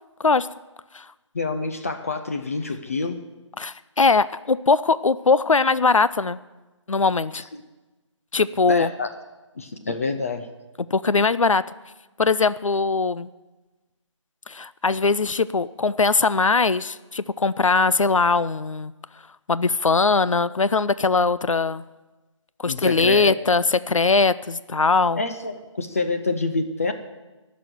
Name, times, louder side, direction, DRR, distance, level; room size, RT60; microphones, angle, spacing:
voice 1, 1.3-3.2 7.3-7.4 8.7-9.1 9.6-10.5 22.7-23.3 25.1-26.9, left 3 dB, 30° left, 6 dB, 0.5 m, -27 dB
voice 2, 3.6-6.4 6.9-7.4 8.3-8.9 10.9-11.6 12.2-13.3 14.5-18.9 19.5-21.8 22.6-25.2, left 4 dB, 90° left, 16 dB, 0.5 m, -20 dB
13.5 x 6.3 x 9.2 m, 1.1 s
figure-of-eight pair, 160°, 16 cm